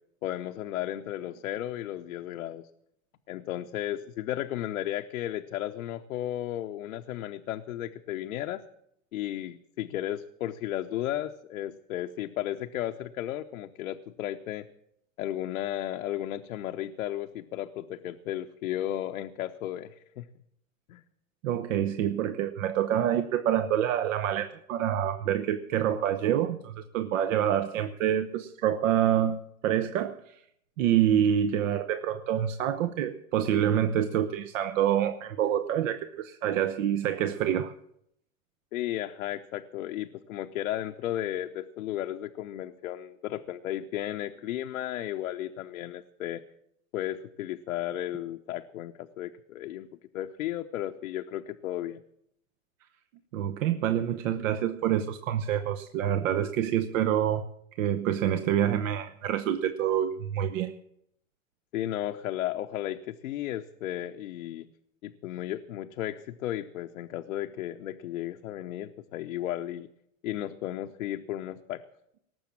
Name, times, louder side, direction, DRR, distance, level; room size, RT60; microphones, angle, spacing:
voice 1, 0.2-2.6 3.3-8.6 9.1-14.7 15.2-20.3 20.9-21.0 38.7-46.4 46.9-49.9 50.1-52.0 61.7-64.7 65.0-69.9 70.2-71.8, left 13 dB, 80° left, 6 dB, 0.8 m, -34 dB
voice 2, 21.4-30.4 30.8-37.7 53.3-57.5 57.8-60.7, right 10 dB, 70° right, 9 dB, 1.0 m, -27 dB
18.5 x 7.2 x 7.3 m, 0.75 s
hypercardioid pair, 120°, 40 cm